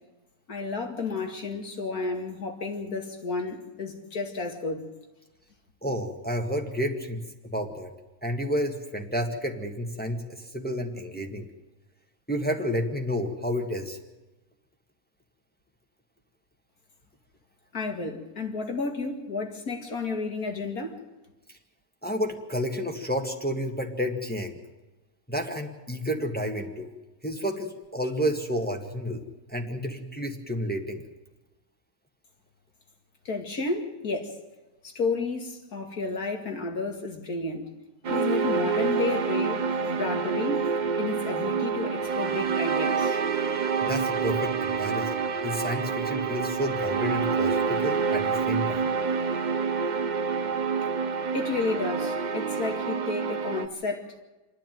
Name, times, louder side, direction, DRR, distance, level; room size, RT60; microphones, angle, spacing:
voice 1, 0.5-4.9 17.7-20.9 33.2-34.4 34.8-37.7 38.1-40.7 41.0-43.2 51.3-54.2, left 3 dB, 80° left, 3 dB, 2.8 m, -32 dB
voice 2, 5.8-7.2 7.5-7.9 8.2-11.5 12.3-14.0 22.0-24.6 25.3-26.9 27.2-31.0 43.8-48.9, equal, 5° left, 2 dB, 1.7 m, -30 dB
sound 1, 38.0-53.7, right 5 dB, 45° right, 0.6 m, -27 dB
27.5 x 10.5 x 9.2 m, 1.1 s
omnidirectional pair, 1.5 m